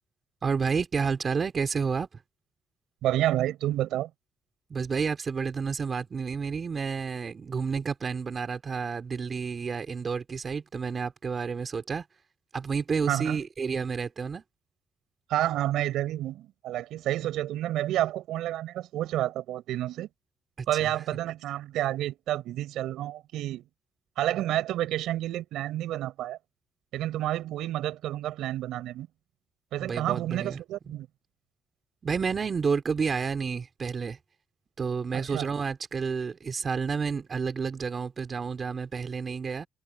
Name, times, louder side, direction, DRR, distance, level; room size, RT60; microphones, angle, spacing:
voice 1, 0.4-2.1 4.7-12.0 12.5-14.4 20.6-20.9 29.8-30.6 30.9-31.0 32.0-34.2 34.8-39.7, right 5 dB, 40° right, 4.2 m, -30 dB
voice 2, 3.0-4.1 13.1-13.4 15.3-20.1 20.7-23.7 24.2-26.4 26.9-29.1 29.7-31.1 35.1-35.5, right 13 dB, 85° right, 5.2 m, -29 dB
cardioid pair, 90°, 0 cm